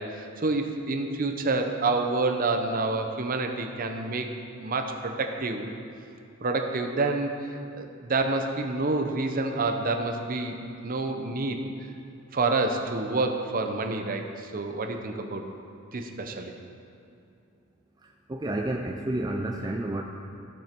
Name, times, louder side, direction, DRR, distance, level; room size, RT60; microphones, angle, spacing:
voice 1, 0.0-4.3 4.6-5.7 6.4-7.3 7.7-10.6 10.8-11.6 12.3-15.5 15.9-16.5, right 3 dB, 40° right, 4 dB, 0.7 m, -28 dB
voice 2, 18.3-20.0, right 1 dB, 20° right, 1 dB, 0.4 m, -30 dB
15.0 x 5.4 x 4.5 m, 2.6 s
head